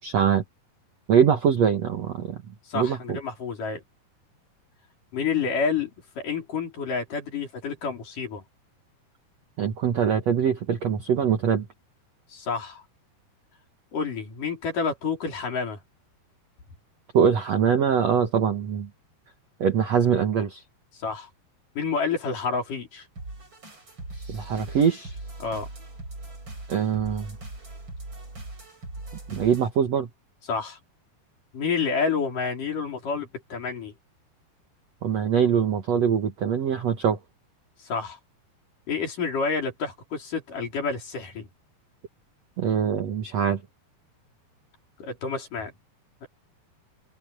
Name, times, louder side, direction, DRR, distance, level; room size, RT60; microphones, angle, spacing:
voice 1, 0.0-0.4 1.1-2.4 2.7-3.2 9.6-11.7 17.1-18.9 19.6-20.6 24.3-25.1 26.7-27.4 29.3-30.1 35.0-37.2 42.6-43.6, right 7 dB, 60° right, 1.8 m, -23 dB
voice 2, 2.7-3.8 5.1-8.4 12.3-12.8 13.9-15.8 20.9-21.3 21.8-23.1 25.4-25.7 30.5-30.8 31.5-33.9 37.8-38.2 38.9-41.5 45.0-45.7 46.2-46.3, left 5 dB, 50° left, 5.9 m, -29 dB
sound 1, 23.2-29.7, right 2 dB, 25° right, 8.0 m, -40 dB
omnidirectional pair, 4.8 m